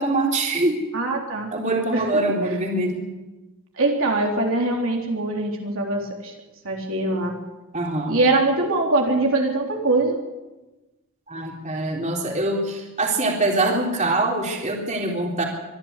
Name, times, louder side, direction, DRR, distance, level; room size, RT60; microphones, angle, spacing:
voice 1, 0.0-0.8 1.5-3.0 7.7-8.2 11.3-15.4, right 2 dB, 35° right, 0 dB, 3.8 m, -24 dB
voice 2, 0.9-1.5 1.9-2.0 3.8-6.3 6.6-7.3 8.1-10.2, right 2 dB, 65° right, 0 dB, 3.7 m, -22 dB
25.0 x 12.5 x 8.4 m, 1.1 s
head